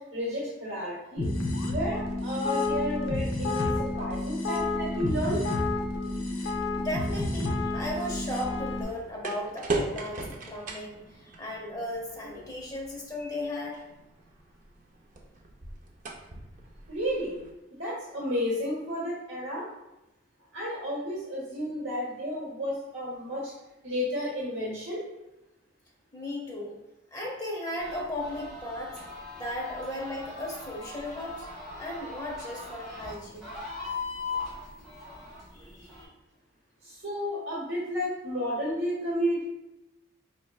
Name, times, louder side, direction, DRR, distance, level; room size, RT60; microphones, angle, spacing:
voice 1, 0.1-1.3 1.7-3.7 4.0-5.4 16.9-17.4 17.8-19.7 20.5-23.5 23.8-25.0 35.6-36.0 36.8-39.4, equal, 70° right, -6 dB, 1.0 m, -32 dB
sound 1, 1.2-8.8, left 2 dB, 85° left, 0.7 m, -30 dB
sound 2, 6.6-17.5, right 2 dB, 40° right, 0.5 m, -40 dB
voice 2, 6.7-13.8 26.1-26.8 27.1-29.0 29.4-31.5 31.8-33.5, left 1 dB, 20° left, -2 dB, 0.9 m, -36 dB
sound 3, 27.8-36.0, left 3 dB, ahead, 1.4 m, -40 dB
4.8 x 3.1 x 2.3 m, 0.95 s
head